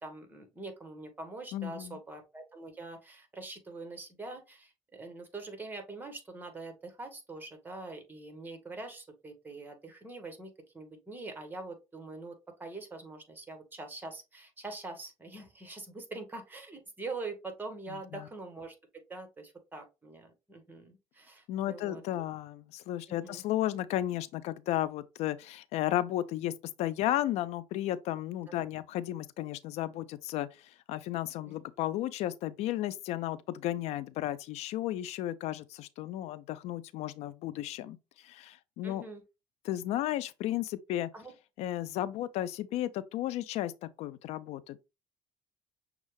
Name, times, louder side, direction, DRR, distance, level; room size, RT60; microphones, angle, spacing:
voice 1, 0.0-18.7 19.1-22.2 23.1-23.4 28.5-28.6 31.4-31.6 38.8-39.2 41.1-41.3, right 3 dB, 15° right, 1.5 m, -44 dB
voice 2, 1.5-2.0 18.1-18.3 21.5-26.5 26.8-39.0 39.6-41.1 41.6-44.8, left 13 dB, 70° left, 0.4 m, -34 dB
6.3 x 2.4 x 3.3 m
cardioid pair, 95°, 11 cm